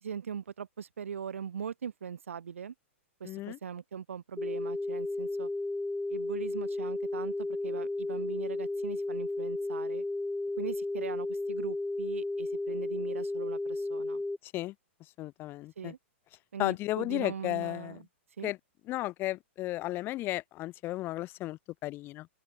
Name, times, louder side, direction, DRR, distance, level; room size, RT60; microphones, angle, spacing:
voice 1, 0.0-2.7 3.2-5.5 6.1-10.0 10.6-14.2 15.8-16.0 16.5-18.0 18.4-18.5, right 7 dB, 85° right, 3.1 m, -41 dB
voice 2, 3.2-3.6 14.4-14.7 15.2-15.9 16.6-18.0 18.4-18.6 18.9-22.3, left 17 dB, 30° left, 1.0 m, -34 dB
sound 1, 4.4-14.4, left 2 dB, 5° left, 1.5 m, -33 dB
open air
hypercardioid pair, 130°, 7 cm